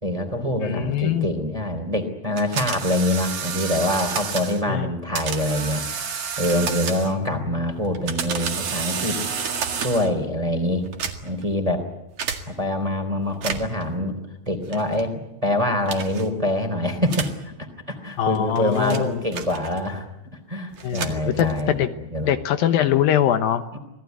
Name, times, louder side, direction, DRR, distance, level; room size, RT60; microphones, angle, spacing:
voice 1, 0.0-5.8 6.4-9.2 9.8-10.9 11.2-11.8 12.5-15.1 15.4-17.5 17.9-20.1 20.3-22.3 23.7-23.8, left 1 dB, 10° right, 6 dB, 2.9 m, -25 dB
voice 2, 0.6-1.3 4.7-4.9 7.3-7.4 18.2-19.2 20.8-21.9 22.2-23.6, left 10 dB, 75° left, 9 dB, 2.7 m, -22 dB
sound 1, 2.4-4.6 5.1-7.3 7.8-10.2 10.8-11.5 12.2-12.4 13.3-13.8 14.7-15.0 15.9-16.3 17.1-17.4 18.2-20.0 20.7-21.8, right 6 dB, 45° right, 2.6 m, -30 dB
27.0 x 18.5 x 9.3 m, 0.95 s
omnidirectional pair, 4.4 m